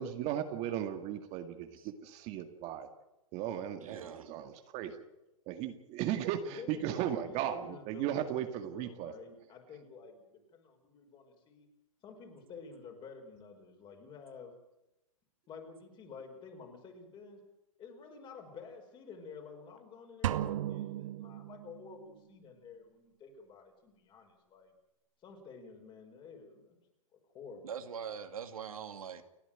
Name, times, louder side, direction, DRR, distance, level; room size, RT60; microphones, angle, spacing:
voice 1, 0.0-2.9 3.3-4.9 5.5-9.1, right 11 dB, 40° right, 6 dB, 2.0 m, -36 dB
voice 2, 3.8-4.3 27.6-29.2, right 7 dB, 80° right, 7 dB, 2.4 m, -42 dB
voice 3, 6.4-11.7 12.0-14.5 15.5-17.4 17.8-24.7 25.2-26.8 27.1-27.7, left 5 dB, 25° left, 4 dB, 5.4 m, -50 dB
sound 1, 20.2-22.0, right 12 dB, 65° right, 1.4 m, -35 dB
29.5 x 10.0 x 9.2 m, 0.91 s
hypercardioid pair, 125°, 18 cm